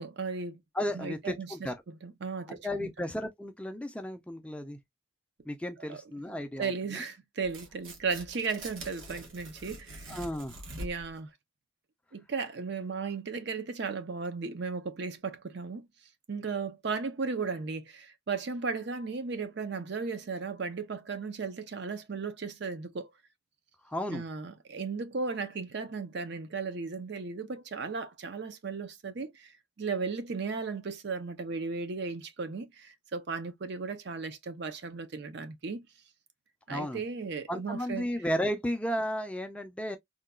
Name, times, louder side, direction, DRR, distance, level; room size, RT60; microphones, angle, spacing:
voice 1, 0.0-0.6 0.9-1.7 2.0-2.9 5.9-6.0 6.6-10.2 10.8-11.3 12.1-15.8 16.3-23.1 24.1-29.5 29.8-35.8 36.7-38.1, right 4 dB, 55° right, 0.5 m, -35 dB
voice 2, 0.7-1.7 2.5-4.8 5.5-7.0 10.1-10.6 23.8-24.2 36.7-37.0 37.5-40.0, equal, 5° left, 0.4 m, -34 dB
Tearing, 7.4-11.2, right 1 dB, 80° right, 1.3 m, -44 dB
3.7 x 2.3 x 2.2 m
head